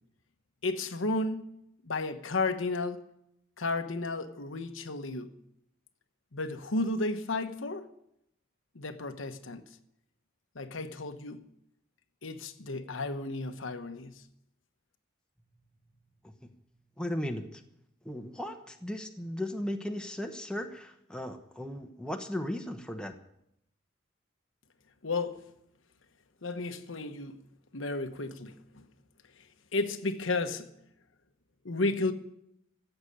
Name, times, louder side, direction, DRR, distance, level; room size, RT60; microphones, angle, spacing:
voice 1, 0.6-1.5 1.8-3.0 3.6-5.3 6.3-7.9 8.7-9.6 10.5-11.4 12.2-14.2 25.0-25.4 26.4-27.4 27.7-28.9 29.7-30.7 31.6-32.1, left 2 dB, 85° left, 1.1 m, -33 dB
voice 2, 17.0-17.6 18.0-23.1, left 1 dB, 5° left, 1.0 m, -36 dB
14.5 x 8.1 x 9.9 m
head